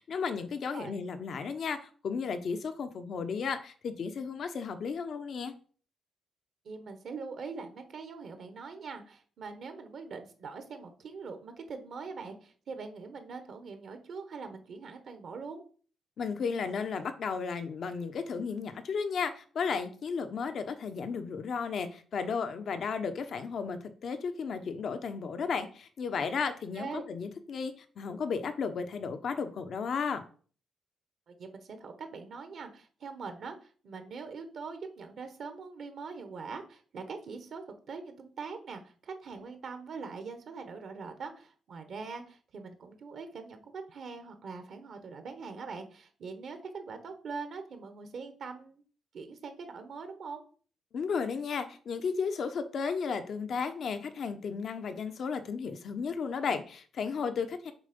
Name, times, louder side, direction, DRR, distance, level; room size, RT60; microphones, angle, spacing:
voice 1, 0.0-5.5 16.2-30.3 50.9-57.7, left 5 dB, 60° left, 0.9 m, -34 dB
voice 2, 6.6-15.6 26.7-27.0 31.3-48.8 49.1-50.4, right 4 dB, 65° right, 1.3 m, -43 dB
7.3 x 3.3 x 5.3 m
cardioid pair, 80°, 0 cm